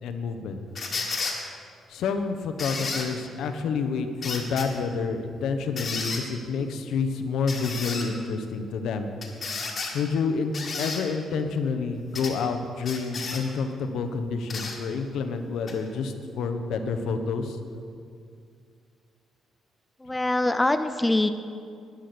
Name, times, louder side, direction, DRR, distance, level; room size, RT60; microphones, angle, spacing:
voice 1, 0.0-0.6 1.9-9.1 9.9-17.6, left 5 dB, 75° left, 7 dB, 1.0 m, -29 dB
sound 1, 0.7-1.4 2.6-3.1 4.2-4.7 5.8-6.2 7.5-8.1 9.2-9.9 10.5-11.0 12.1-12.3 12.8-13.4 14.5-14.8 15.7-15.8, left 4 dB, 35° left, 1.6 m, -32 dB
voice 2, 20.0-21.3, left 2 dB, 10° left, 9 dB, 0.4 m, -23 dB
11.5 x 9.9 x 6.1 m, 2.3 s
cardioid pair, 170°, 0 cm